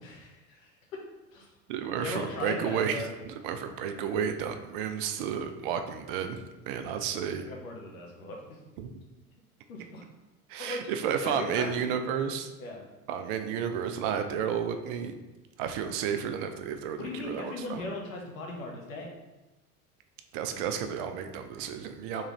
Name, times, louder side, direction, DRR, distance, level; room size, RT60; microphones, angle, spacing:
voice 1, 0.0-1.0 1.3-1.5 2.0-3.1 7.4-8.6 9.7-10.0 10.6-10.8 11.2-11.9 12.6-12.8 16.9-19.1 22.1-22.2, left 2 dB, 65° left, 0 dB, 0.9 m, -38 dB
voice 2, 1.7-7.5 8.8-8.9 10.5-12.5 13.1-15.2 15.6-17.8 20.3-22.2, right 7 dB, 40° right, 7 dB, 0.4 m, -32 dB
3.6 x 3.1 x 3.0 m, 1.1 s
figure-of-eight pair, 80°, 44 cm